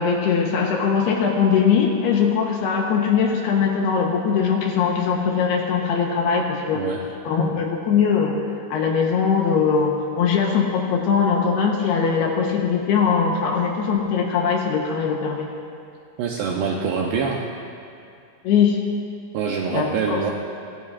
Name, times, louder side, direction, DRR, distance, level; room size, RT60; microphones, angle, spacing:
voice 1, 0.0-6.9 7.2-8.4 8.7-15.5 18.4-18.8 19.7-20.3, left 6 dB, 75° left, 0 dB, 2.6 m, -21 dB
voice 2, 16.2-17.4 19.3-20.3, right 6 dB, 80° right, -1 dB, 2.4 m, -25 dB
23.0 x 16.0 x 2.5 m, 2.5 s
omnidirectional pair, 5.7 m